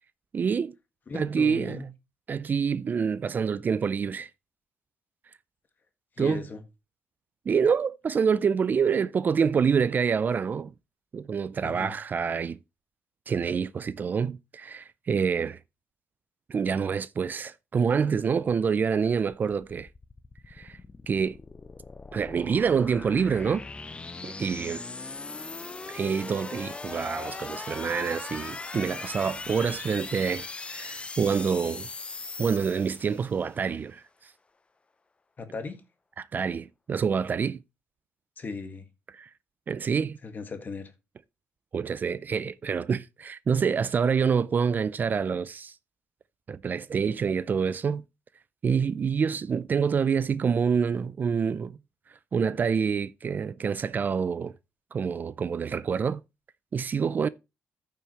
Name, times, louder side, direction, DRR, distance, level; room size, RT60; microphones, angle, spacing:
voice 1, 0.3-0.7 1.1-1.8 2.3-4.3 6.2-6.4 7.5-10.7 11.1-12.6 13.3-15.6 16.5-19.9 20.5-20.8 21.1-21.4 22.1-23.6 24.2-24.8 25.9-31.9 32.4-34.3 36.2-37.6 39.2-39.3 39.7-40.2 41.7-45.7 46.5-48.0 48.6-51.7 52.3-54.5 54.9-56.2 56.7-57.3, right 6 dB, 40° right, 0.4 m, -27 dB
voice 2, 1.1-1.9 6.1-6.6 11.6-12.0 35.4-35.8 38.4-38.8 40.2-40.9, left 4 dB, 40° left, 1.6 m, -37 dB
sound 1, 19.5-33.5, left 3 dB, 20° left, 0.5 m, -40 dB
14.0 x 5.7 x 2.9 m
cardioid pair, 95°, 5 cm